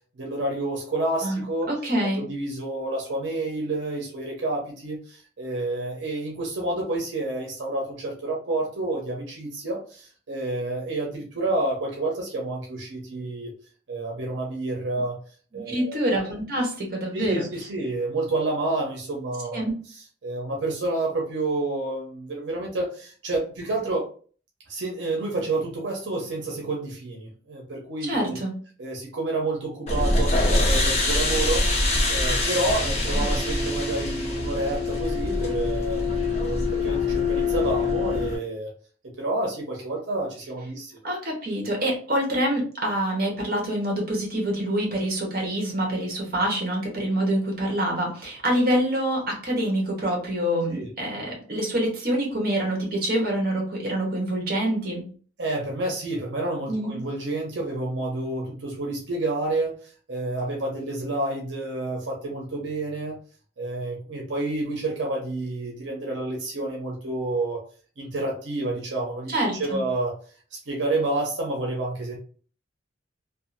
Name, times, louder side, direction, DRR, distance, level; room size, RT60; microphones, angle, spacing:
voice 1, 0.2-1.7 2.2-13.5 13.9-15.2 15.5-16.0 17.1-19.6 20.2-24.1 24.7-28.4 28.8-31.6 32.1-36.0 36.4-38.7 39.2-40.9 50.7-50.9 55.4-63.2 63.6-67.6 68.0-69.3 69.6-70.1 70.7-72.2, right 2 dB, 90° right, -1 dB, 0.7 m, -29 dB
voice 2, 1.2-2.3 15.5-17.5 19.5-19.7 28.0-28.6 41.0-55.1 56.7-57.0 69.3-69.8, right 1 dB, 55° right, 0 dB, 1.0 m, -26 dB
sound 1, 29.9-38.4, left 2 dB, 35° left, 0.7 m, -24 dB
2.7 x 2.4 x 2.5 m, 0.41 s
head